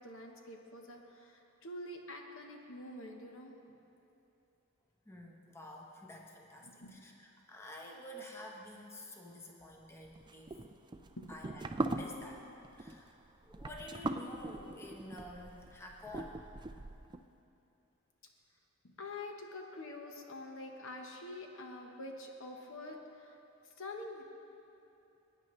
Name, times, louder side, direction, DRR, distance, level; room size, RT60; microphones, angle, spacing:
voice 1, 0.0-3.6 6.6-6.9 11.2-11.3 18.8-23.4 23.6-24.2, left 2 dB, 60° left, 2 dB, 1.1 m, -46 dB
voice 2, 5.0-10.6 11.3-12.4 12.8-13.2 13.4-16.4, left 1 dB, 10° left, -1 dB, 1.0 m, -50 dB
sound 1, 10.2-17.2, right 2 dB, 20° right, 0.4 m, -41 dB
21.5 x 9.8 x 3.2 m, 2.8 s
head